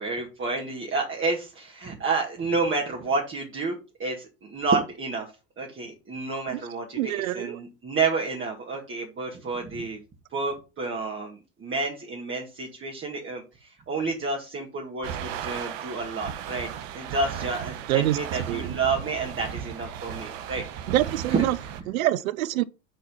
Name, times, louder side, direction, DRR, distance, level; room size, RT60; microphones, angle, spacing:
voice 1, 0.0-5.3 5.6-10.0 10.3-20.6 21.3-21.8, right 3 dB, 30° right, 2.0 m, -30 dB
voice 2, 7.0-7.6 17.9-18.2 18.5-18.7 20.9-21.6 21.9-22.6, right 14 dB, 90° right, 0.5 m, -25 dB
sound 1, 15.0-21.8, right 9 dB, 70° right, 1.2 m, -35 dB
7.8 x 4.1 x 5.5 m
hypercardioid pair, 90°, 40 cm